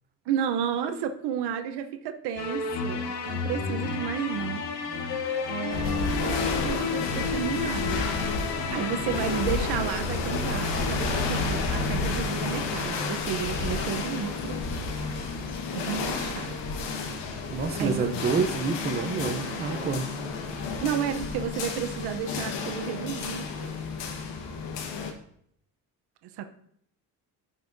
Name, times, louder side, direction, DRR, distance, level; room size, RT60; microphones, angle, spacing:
voice 1, 0.3-4.6 5.5-8.1 8.5-14.6 15.7-16.5 17.8-18.1 20.8-23.5 26.4-26.5, right 9 dB, 70° right, 7 dB, 0.9 m, -32 dB
sound 1, 2.4-13.7, left 4 dB, 65° left, 1.2 m, -33 dB
sound 2, 5.7-25.1, left 4 dB, 85° left, 1.4 m, -31 dB
voice 2, 17.5-20.1, right 4 dB, 25° right, 6 dB, 0.7 m, -28 dB
14.5 x 5.5 x 2.7 m, 0.69 s
cardioid pair, 170°, 41 cm